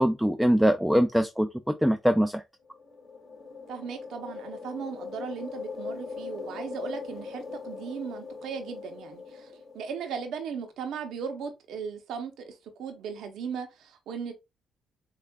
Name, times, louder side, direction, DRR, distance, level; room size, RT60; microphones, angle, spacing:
voice 1, 0.0-1.5 1.8-2.3, equal, 5° right, 0.3 m, -22 dB
sound 1, 2.6-10.3, left 4 dB, 45° left, 1.7 m, -40 dB
voice 2, 3.7-9.5 9.7-12.5 12.8-14.3, right 6 dB, 80° right, 0.7 m, -37 dB
4.5 x 2.4 x 2.3 m
cardioid pair, 75°, 0 cm